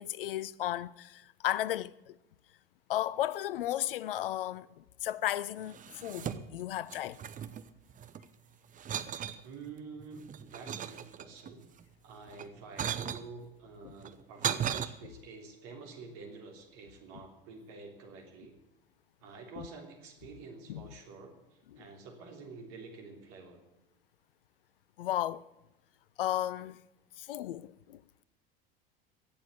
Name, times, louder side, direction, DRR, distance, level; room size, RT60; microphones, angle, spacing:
voice 1, 0.0-2.2 2.9-7.2 13.8-13.9 19.6-19.7 20.7-20.9 21.7-21.9 25.0-25.5 26.2-26.8 27.2-28.0, left 13 dB, 70° left, 0.6 m, -34 dB
sound 1, 5.6-6.6 6.9-8.3 8.8-9.4 10.0-11.5 12.3-13.3 14.0-14.9, right 9 dB, 25° right, 0.8 m, -36 dB
voice 2, 9.4-11.7 12.0-18.6 19.2-21.3 21.8-23.6, right 4 dB, 50° right, 3.2 m, -48 dB
17.5 x 7.2 x 8.4 m
figure-of-eight pair, 70°, 29 cm